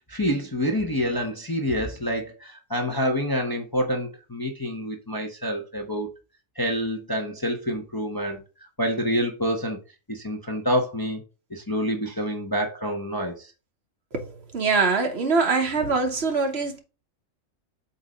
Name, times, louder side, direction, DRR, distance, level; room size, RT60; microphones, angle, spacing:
voice 1, 0.1-6.1 6.6-9.8 10.1-11.2 11.5-13.5, equal, 20° left, 0.8 m, -27 dB
voice 2, 14.1-16.8, right 4 dB, 55° right, 1.2 m, -23 dB
7.9 x 2.7 x 5.0 m
omnidirectional pair, 1.4 m